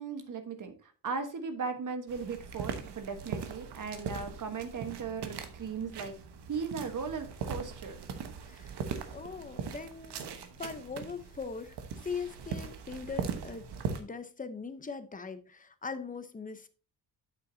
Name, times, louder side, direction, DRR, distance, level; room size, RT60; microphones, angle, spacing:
voice 1, 0.0-6.1 6.5-7.9, right 5 dB, 50° right, 1.2 m, -37 dB
sound 1, 2.1-14.0, right 6 dB, 80° right, 1.1 m, -40 dB
voice 2, 8.4-13.7 14.0-16.7, left 5 dB, 20° left, 0.7 m, -41 dB
8.9 x 7.5 x 2.7 m
wide cardioid pair, 150°, 40 cm